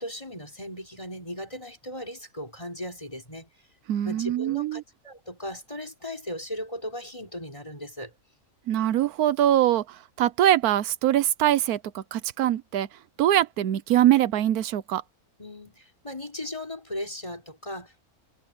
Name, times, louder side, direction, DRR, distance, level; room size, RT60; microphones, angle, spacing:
voice 1, 0.0-3.5 4.0-8.1 15.4-18.0, left 1 dB, 20° left, 4.8 m, -37 dB
voice 2, 3.9-4.8 8.7-12.9 13.2-15.0, right 12 dB, 90° right, 1.2 m, -23 dB
omnidirectional pair, 1.6 m